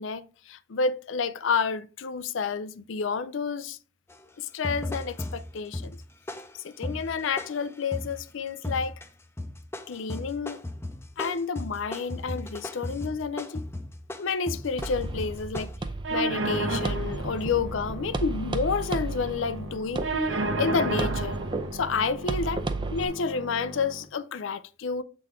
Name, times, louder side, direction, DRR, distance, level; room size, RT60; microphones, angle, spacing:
voice 1, 0.0-3.8 4.4-6.0 6.6-9.0 9.9-10.6 11.2-13.6 14.2-15.7 16.1-20.3 20.6-21.4 21.7-22.6 22.9-25.0, left 5 dB, 85° left, 0.5 m, -30 dB
sound 1, 4.1-4.2 4.6-8.2 8.6-9.1 9.4-15.8, left 1 dB, 15° left, 0.6 m, -36 dB
sound 2, 14.8-23.1, right 2 dB, 25° right, 0.5 m, -34 dB
sound 3, 16.0-24.0, right 2 dB, 80° right, 0.9 m, -33 dB
7.7 x 3.8 x 3.6 m
head